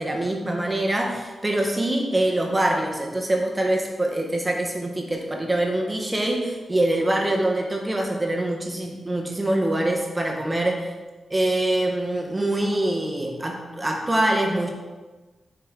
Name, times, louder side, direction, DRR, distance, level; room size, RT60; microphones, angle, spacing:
voice 1, 0.0-10.9 11.3-14.7, right 1 dB, 15° right, 1 dB, 0.8 m, -24 dB
10.0 x 4.7 x 3.5 m, 1.3 s
wide cardioid pair, 180°, 0 cm